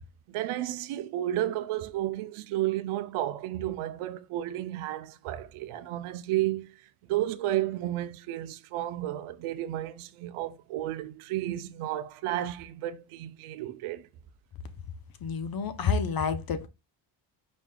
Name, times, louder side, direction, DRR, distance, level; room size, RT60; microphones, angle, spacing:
voice 1, 0.3-6.8 7.1-14.1, right 14 dB, 80° right, 0.6 m, -32 dB
voice 2, 15.2-16.7, left 5 dB, 45° left, 0.7 m, -29 dB
5.0 x 3.2 x 2.2 m
supercardioid pair, 70°, 50 cm